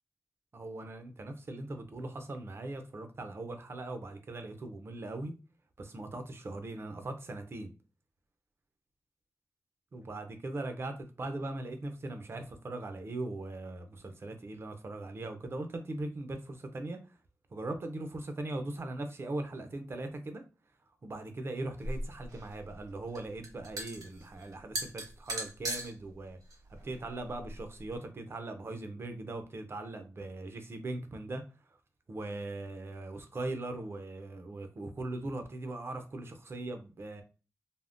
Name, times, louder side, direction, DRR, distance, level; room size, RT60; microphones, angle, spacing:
voice 1, 0.5-5.3 5.8-7.7 9.9-17.0 17.5-20.4 21.0-26.4 26.8-31.4 32.1-37.2, right 2 dB, 45° right, 0.5 m, -40 dB
sound 1, 21.8-28.0, right 1 dB, 90° right, 1.2 m, -40 dB
3.5 x 2.0 x 2.5 m
wide cardioid pair, 120°, 6 cm